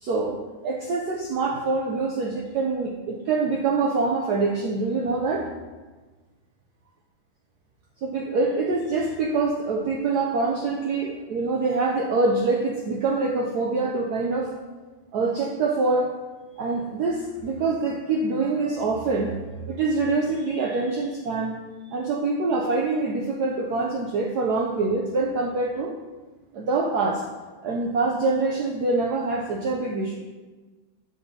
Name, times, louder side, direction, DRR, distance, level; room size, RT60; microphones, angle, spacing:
voice 1, 0.0-5.5 8.0-14.5 15.1-16.1 16.6-19.4 19.7-21.6 21.8-25.9 26.5-27.2 27.6-30.2, right 3 dB, 85° right, 0 dB, 0.8 m, -25 dB
7.6 x 6.0 x 2.8 m, 1.3 s
omnidirectional pair, 2.4 m